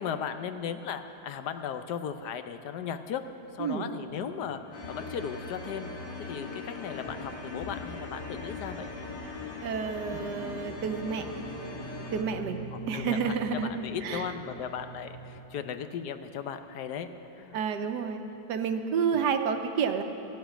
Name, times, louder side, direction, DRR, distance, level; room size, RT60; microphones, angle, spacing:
voice 1, 0.0-3.2 3.5-5.9 6.2-8.9 12.7-17.1 17.3-17.6 19.1-19.2, left 8 dB, 70° left, 9 dB, 1.2 m, -36 dB
sound 1, 4.0-15.4, equal, 40° left, 0.3 m, -45 dB
sound 2, 4.7-12.2, left 3 dB, 90° left, 2.4 m, -41 dB
voice 2, 9.6-11.3 12.1-12.6 12.9-13.7 14.0-14.3 17.5-18.2 18.5-20.0, right 6 dB, 75° right, 7 dB, 1.3 m, -29 dB
14.0 x 8.0 x 10.0 m, 3.0 s
omnidirectional pair, 1.9 m